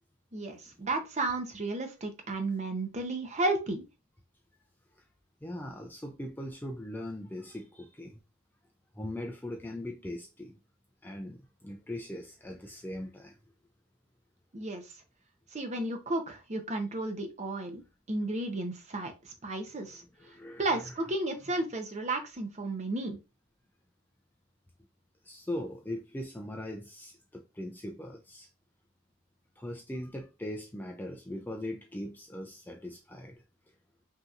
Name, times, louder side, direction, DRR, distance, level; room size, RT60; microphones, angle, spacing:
voice 1, 0.3-3.8 14.5-14.8 15.5-17.8 18.1-20.0 20.6-23.2, right 2 dB, 30° right, 0.7 m, -33 dB
voice 2, 5.4-8.2 8.9-10.6 11.0-13.4 19.8-21.0 25.2-28.5 29.6-33.4, left 1 dB, 10° left, 0.4 m, -40 dB
5.3 x 2.9 x 2.4 m
head